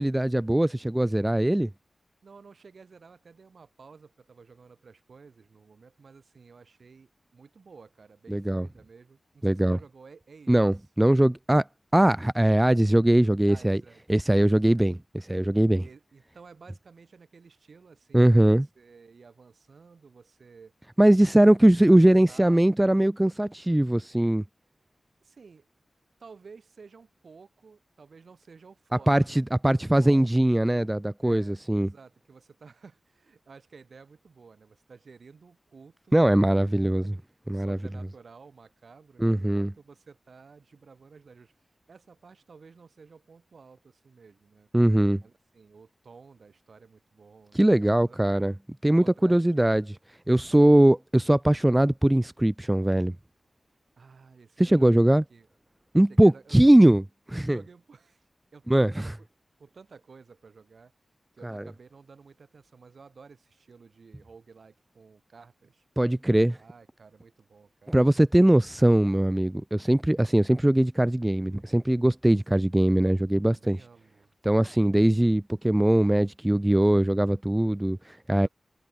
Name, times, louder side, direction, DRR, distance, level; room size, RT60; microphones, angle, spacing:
voice 1, 0.0-1.7 8.3-8.7 9.4-9.8 10.5-11.6 11.9-13.8 14.1-15.8 18.1-18.7 21.0-24.4 29.1-31.9 36.1-37.0 37.5-37.8 39.2-39.7 44.7-45.2 47.5-48.5 48.8-49.8 50.3-53.1 54.6-55.2 55.9-57.6 58.7-59.1 61.4-61.6 66.0-66.6 67.9-73.8 74.4-78.5, right 1 dB, 15° right, 0.4 m, -21 dB
voice 2, 2.2-10.7 13.5-14.0 15.8-20.7 21.4-22.6 25.2-25.7 26.2-29.2 29.7-30.3 31.2-36.2 37.0-41.5 41.9-44.7 45.2-48.2 49.0-49.9 54.0-55.5 56.1-56.6 57.4-58.2 58.5-59.3 59.6-60.9 61.3-65.8 66.6-68.1 69.0-69.2 73.5-74.3 78.4-78.5, right 5 dB, 70° right, 7.3 m, -52 dB
wide cardioid pair, 70°, 0 cm